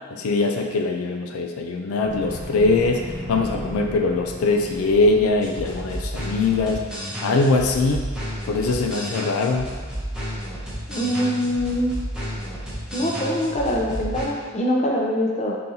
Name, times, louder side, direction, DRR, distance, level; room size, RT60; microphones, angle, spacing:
voice 1, 0.1-6.8 7.2-8.1 8.5-9.7, left 3 dB, 85° left, 3 dB, 0.4 m, -22 dB
sound 1, 2.0-6.8, equal, 35° right, 0.9 m, -36 dB
sound 2, 5.4-14.2, equal, 5° right, 0.8 m, -32 dB
voice 2, 10.9-12.0 12.9-15.5, equal, 30° left, -2 dB, 0.5 m, -23 dB
4.2 x 3.8 x 2.7 m, 1.5 s
head